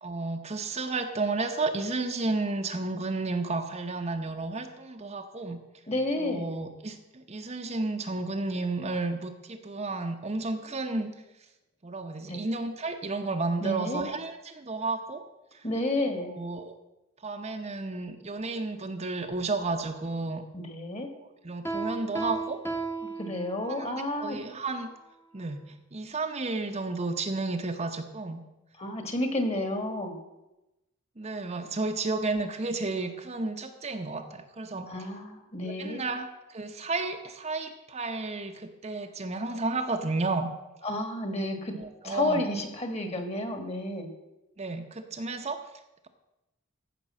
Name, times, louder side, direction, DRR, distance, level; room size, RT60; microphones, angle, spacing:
voice 1, 0.0-5.6 6.2-11.1 11.8-15.2 16.3-16.7 17.2-20.4 21.4-22.6 23.7-24.9 25.3-25.6 25.9-28.4 31.2-34.9 35.6-40.5 41.7-42.4 44.6-45.6, right 3 dB, 30° right, 5 dB, 0.8 m, -32 dB
voice 2, 5.9-6.5 12.3-12.5 13.6-14.0 15.6-16.3 20.5-21.1 23.2-24.4 28.8-30.2 34.9-36.0 40.8-41.7 42.0-44.1, left 1 dB, 30° left, 6 dB, 1.6 m, -31 dB
Piano, 21.6-23.9, right 3 dB, 10° left, 0.9 m, -34 dB
14.5 x 5.2 x 7.4 m, 0.97 s
head